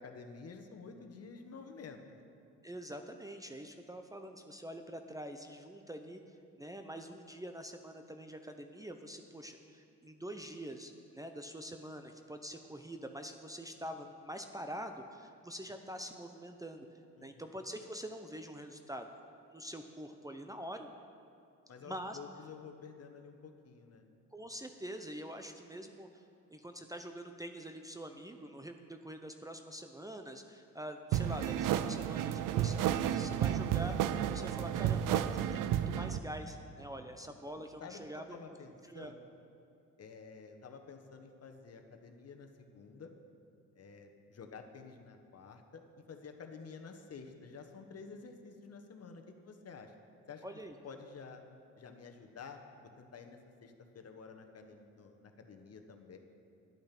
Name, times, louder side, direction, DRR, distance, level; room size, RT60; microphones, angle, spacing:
voice 1, 0.0-2.2 17.2-17.6 21.7-24.0 36.9-37.1 37.8-39.2 40.0-43.1 43.7-49.9 50.3-50.4 50.8-51.4 51.8-52.6 53.0-56.2, left 5 dB, 45° left, 5 dB, 1.2 m, -51 dB
voice 2, 2.6-6.2 6.6-16.9 17.2-19.1 19.5-20.9 21.9-22.2 24.3-26.2 26.5-34.0 34.3-38.4 38.9-39.1 50.4-50.7, equal, 10° right, 6 dB, 0.7 m, -45 dB
sound 1, 31.1-36.2, right 10 dB, 70° right, 0.5 m, -32 dB
10.5 x 8.6 x 5.9 m, 2.6 s
supercardioid pair, 65°, 33 cm